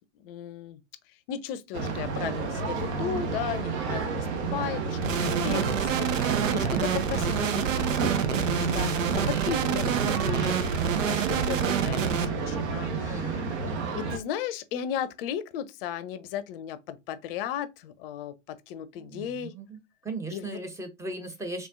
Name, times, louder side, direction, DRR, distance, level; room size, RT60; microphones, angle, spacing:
voice 1, 0.2-0.8 1.3-13.4 13.9-19.5 20.3-20.6, left 9 dB, 45° left, 0.6 m, -36 dB
sound 1, 1.7-14.2, right 4 dB, 55° right, 1.0 m, -31 dB
sound 2, 5.0-12.3, right 7 dB, 75° right, 0.7 m, -27 dB
voice 2, 6.5-7.2 13.0-14.0 18.9-21.7, right 3 dB, 5° right, 0.7 m, -38 dB
4.2 x 3.5 x 2.4 m
hypercardioid pair, 100°, 39 cm